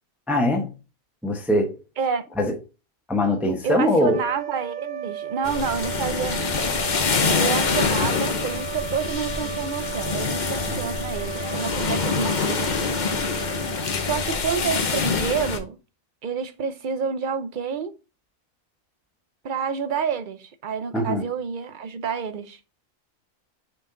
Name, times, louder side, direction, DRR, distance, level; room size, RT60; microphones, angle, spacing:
voice 1, 0.3-0.7 1.2-1.8 2.4-2.6 3.1-4.2 10.7-10.8 20.9-21.2, left 1 dB, ahead, 0.9 m, -22 dB
voice 2, 3.6-6.5 7.2-12.7 14.0-15.8 16.2-18.0 19.4-22.6, right 6 dB, 45° right, 0.7 m, -28 dB
sound 1, 4.0-14.6, right 10 dB, 90° right, 1.1 m, -35 dB
sound 2, 5.4-15.6, left 5 dB, 40° left, 0.8 m, -25 dB
6.5 x 4.3 x 3.7 m
omnidirectional pair, 1.4 m